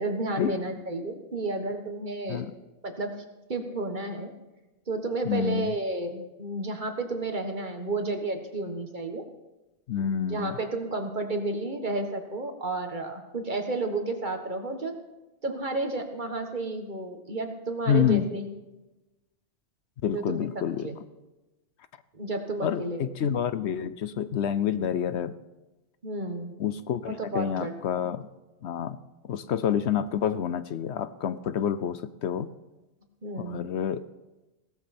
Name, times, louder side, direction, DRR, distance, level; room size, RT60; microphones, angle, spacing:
voice 1, 0.0-2.4 2.8-3.1 3.5-4.3 4.9-9.2 10.3-14.9 15.4-18.5 20.1-20.4 20.8-21.0 22.1-23.3 26.0-26.5 27.1-27.7 33.2-33.7, right 2 dB, 40° right, 5 dB, 1.6 m, -31 dB
voice 2, 5.3-5.7 9.9-10.6 17.9-18.3 20.0-20.9 22.6-25.3 26.6-28.3 28.6-29.0 29.2-32.5 33.4-34.0, left 8 dB, 70° left, 13 dB, 0.9 m, -28 dB
17.0 x 13.5 x 4.3 m, 1.1 s
omnidirectional pair, 1.2 m